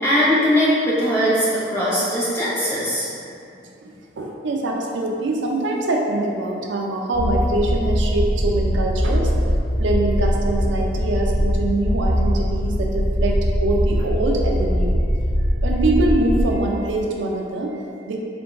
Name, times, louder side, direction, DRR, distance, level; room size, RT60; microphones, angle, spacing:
voice 1, 0.0-3.1, equal, 15° left, -9 dB, 0.8 m, -20 dB
voice 2, 3.8-9.3 9.8-15.0 15.6-18.2, right 2 dB, 90° right, 0 dB, 0.5 m, -24 dB
sound 1, 7.1-16.4, equal, 35° right, 0.4 m, -21 dB
3.8 x 3.7 x 2.3 m, 2.5 s
head